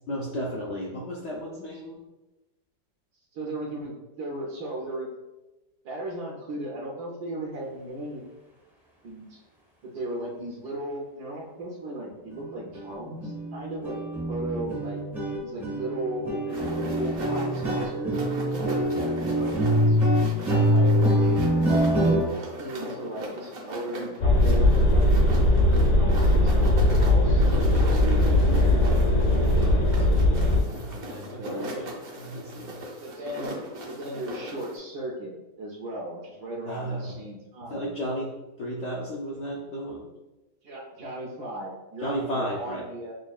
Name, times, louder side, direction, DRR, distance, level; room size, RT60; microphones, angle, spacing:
voice 1, 0.0-2.0 30.7-32.9 36.7-37.2 37.7-40.1 42.0-42.8, equal, 75° left, -3 dB, 0.6 m, -34 dB
voice 2, 3.3-5.1 5.8-8.2 9.0-9.4 9.8-14.0 14.3-15.0 15.4-20.0 20.5-21.6 21.9-25.1 25.9-30.1 31.4-31.7 33.0-33.6 33.9-38.0 40.6-43.1, right 1 dB, 75° right, -3 dB, 1.2 m, -36 dB
sound 1, 12.3-12.4 12.7-12.9 13.2-22.3, equal, 5° right, 0.3 m, -25 dB
sound 2, 16.5-34.8, right 1 dB, 55° right, 0.7 m, -38 dB
sound 3, 24.2-30.6, left 1 dB, 60° left, 1.2 m, -20 dB
6.2 x 2.2 x 2.3 m, 1.1 s
omnidirectional pair, 1.8 m